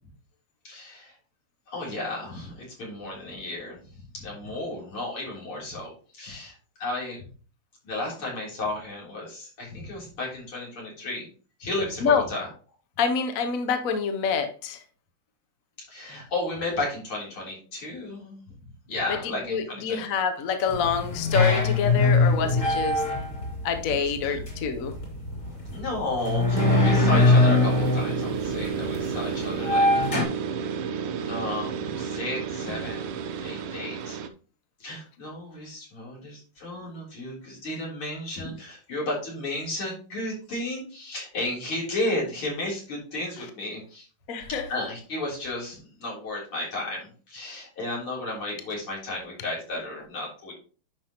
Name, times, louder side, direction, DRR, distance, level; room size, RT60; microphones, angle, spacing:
voice 1, 0.6-1.1 1.7-3.8 4.1-7.2 7.8-11.3 11.6-12.5 15.9-18.4 18.9-20.0 24.2-24.4 25.6-30.0 31.2-34.2 34.8-44.1 44.7-50.5, left 2 dB, 80° left, -4 dB, 4.4 m, -33 dB
voice 2, 13.0-14.8 19.4-23.0 23.6-24.9 44.3-44.6, left 6 dB, 55° left, 7 dB, 1.0 m, -26 dB
sound 1, 20.7-30.2, left 3 dB, 35° left, 3.4 m, -23 dB
sound 2, 26.5-34.3, right 7 dB, 85° right, 1.6 m, -31 dB
10.5 x 5.4 x 2.9 m, 0.39 s
omnidirectional pair, 2.3 m